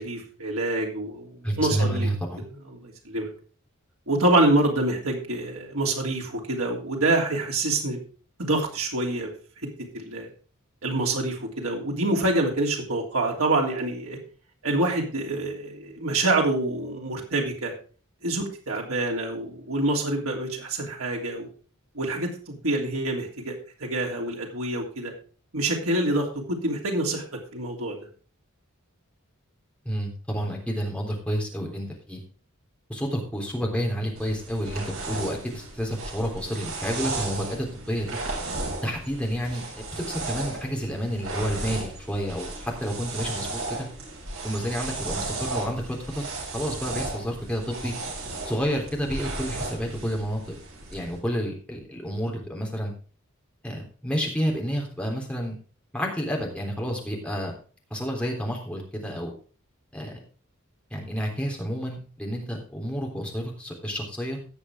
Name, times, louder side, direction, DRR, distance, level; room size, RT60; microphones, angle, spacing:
voice 1, 0.0-2.1 2.6-3.3 4.1-8.0 8.4-9.3 9.9-10.3 10.8-14.2 14.6-17.7 18.2-21.5 21.9-23.5 23.8-25.1 25.5-27.2 27.5-28.0, right 2 dB, 85° right, 0 dB, 3.1 m, -26 dB
voice 2, 1.4-2.5 29.9-32.2 32.9-38.2 38.8-43.9 44.4-45.8 46.1-46.2 46.5-47.9 48.4-50.6 50.9-52.9 53.6-55.6 55.9-57.6 57.9-59.3 59.9-60.2 60.9-64.4, equal, 5° left, 0 dB, 3.5 m, -30 dB
sound 1, 34.2-51.2, right 2 dB, 70° right, 6.9 m, -35 dB
17.5 x 6.5 x 3.6 m, 0.40 s
head